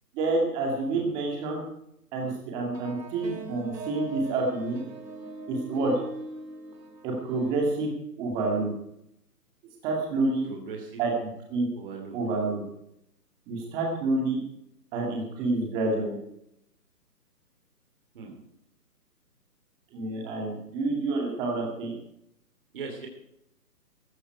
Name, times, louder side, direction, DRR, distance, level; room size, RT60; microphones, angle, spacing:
voice 1, 0.1-1.6 2.1-4.8 5.5-5.9 7.0-7.9 8.2-8.7 9.8-10.5 11.0-11.1 11.5-11.7 12.1-12.6 13.5-14.4 14.9-16.2 19.9-21.9, right 3 dB, 10° right, 0 dB, 2.2 m, -28 dB
sound 1, 2.7-7.9, right 3 dB, 85° right, 2.4 m, -41 dB
voice 2, 10.5-11.0 11.7-12.2 18.1-18.4 22.7-23.1, right 5 dB, 35° right, 1 dB, 2.8 m, -39 dB
15.0 x 14.5 x 4.6 m, 0.78 s
hypercardioid pair, 170°, 49 cm